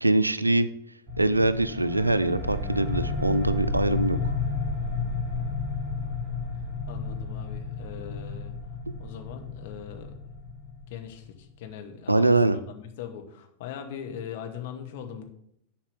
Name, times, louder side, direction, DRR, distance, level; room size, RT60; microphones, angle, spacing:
voice 1, 0.0-0.7 1.2-4.3 8.9-9.0 12.1-12.6, right 2 dB, 85° right, 14 dB, 0.4 m, -23 dB
sound 1, 1.1-11.3, left 3 dB, 30° right, 2.9 m, -32 dB
voice 2, 6.9-8.5 9.0-10.4 10.9-15.3, left 8 dB, 50° left, 5 dB, 1.2 m, -40 dB
7.1 x 4.7 x 6.9 m, 0.74 s
figure-of-eight pair, 90°, 0 cm